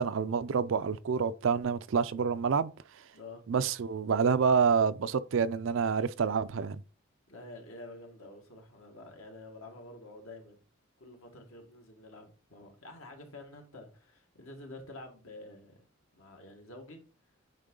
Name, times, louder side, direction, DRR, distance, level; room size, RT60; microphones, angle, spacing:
voice 1, 0.0-2.7 3.5-6.8, right 6 dB, 65° right, 0.4 m, -28 dB
voice 2, 3.1-3.4 7.3-10.6 11.0-15.8 16.1-17.0, left 2 dB, 75° left, 1.8 m, -49 dB
9.0 x 3.6 x 3.8 m
head